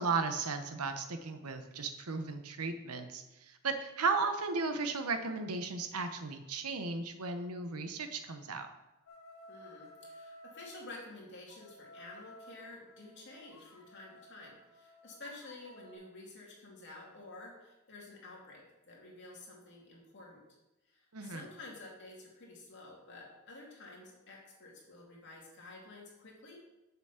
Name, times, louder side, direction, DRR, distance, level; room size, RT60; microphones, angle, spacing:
voice 1, 0.0-8.7 21.1-21.4, right 4 dB, 85° right, 7 dB, 1.0 m, -35 dB
sound 1, 9.1-10.8 11.5-15.9, equal, 70° left, 1.5 m, -55 dB
voice 2, 9.5-20.4 20.9-26.6, left 2 dB, 50° left, -3 dB, 2.6 m, -51 dB
7.1 x 5.9 x 5.9 m, 1.0 s
head